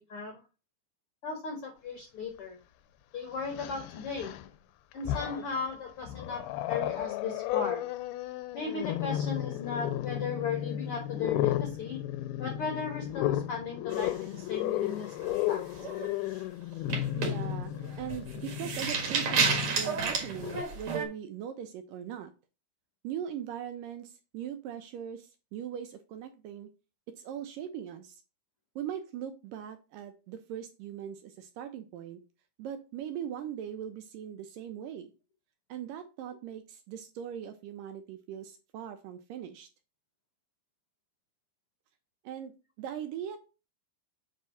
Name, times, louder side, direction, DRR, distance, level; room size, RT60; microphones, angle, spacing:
voice 1, 0.1-0.4 1.2-2.6 3.1-4.4 4.9-7.9 8.5-12.0 12.4-15.7, left 5 dB, 70° left, 2 dB, 1.3 m, -36 dB
Growling, 2.4-2.5 3.4-4.5 4.9-5.6 6.1-20.6, left 13 dB, 85° left, 2.5 m, -34 dB
sound 1, 13.9-14.8 15.2-15.5 15.8-16.1 16.7-21.1, right 5 dB, 55° right, 2.6 m, -31 dB
voice 2, 17.2-17.7 18.0-22.3 23.0-26.7 27.2-28.2 28.8-32.2 32.6-35.1 35.7-39.7 42.2-42.5 42.8-43.4, right 9 dB, 80° right, 7 dB, 2.1 m, -40 dB
7.6 x 3.6 x 5.6 m, 0.31 s
omnidirectional pair, 4.4 m